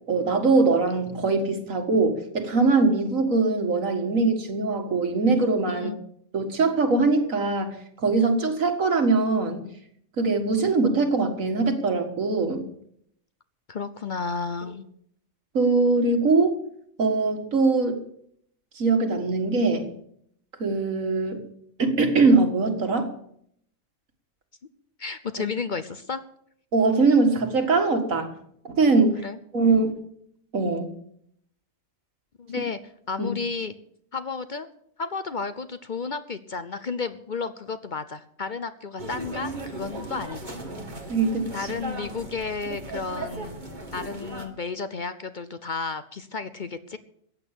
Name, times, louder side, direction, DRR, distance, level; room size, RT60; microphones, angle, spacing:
voice 1, 0.1-5.9 6.3-7.8 8.0-9.6 10.2-12.6 15.5-16.6 17.0-18.0 18.8-19.9 20.6-21.4 21.8-23.1 26.7-28.3 28.6-29.2 29.5-29.9 30.5-30.9 33.2-33.3 41.1-41.5, right 3 dB, 85° right, 5 dB, 2.3 m, -22 dB
voice 2, 5.7-6.0 13.7-14.8 25.0-26.2 29.2-29.4 32.4-32.8 33.1-33.7 34.1-34.7 35.0-40.6 41.5-43.6 43.9-47.0, left 4 dB, 45° left, 11 dB, 0.8 m, -32 dB
sound 1, 39.0-44.5, right 1 dB, 35° right, 2.0 m, -37 dB
15.0 x 8.5 x 8.4 m, 0.69 s
omnidirectional pair, 1.4 m